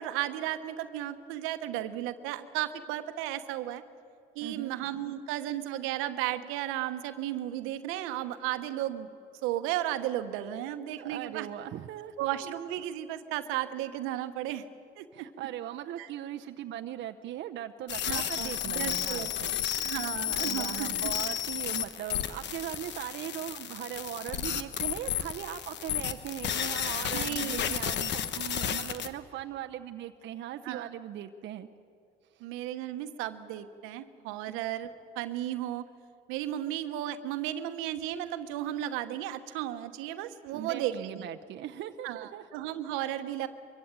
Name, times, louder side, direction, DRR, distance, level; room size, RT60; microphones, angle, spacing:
voice 1, 0.0-3.8 4.3-9.1 9.4-11.5 12.2-14.6 15.0-15.3 16.0-16.1 18.0-19.3 19.8-21.1 27.1-27.8 30.6-30.9 32.4-34.9 35.1-35.8 36.3-41.3 42.0-43.5, right 13 dB, 85° right, 10 dB, 1.1 m, -34 dB
voice 2, 4.4-4.8 11.0-12.6 15.1-31.7 32.3-32.4 40.5-42.5, right 12 dB, 60° right, 6 dB, 0.8 m, -39 dB
sound 1, 17.9-29.1, left 10 dB, 60° left, 1.2 m, -32 dB
23.0 x 15.5 x 9.0 m, 2.5 s
supercardioid pair, 85°, 21 cm